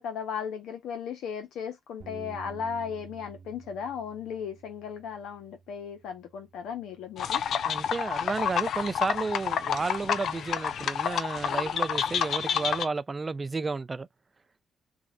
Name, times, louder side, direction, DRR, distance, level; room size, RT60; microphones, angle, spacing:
voice 1, 0.0-7.4, left 7 dB, 80° left, 1.1 m, -36 dB
Bass guitar, 2.0-8.2, right 5 dB, 65° right, 0.7 m, -51 dB
sound 1, 7.2-12.9, left 8 dB, 65° left, 0.4 m, -29 dB
voice 2, 7.7-14.1, right 4 dB, 30° right, 0.4 m, -32 dB
3.1 x 2.6 x 2.6 m
cardioid pair, 90°, 0 cm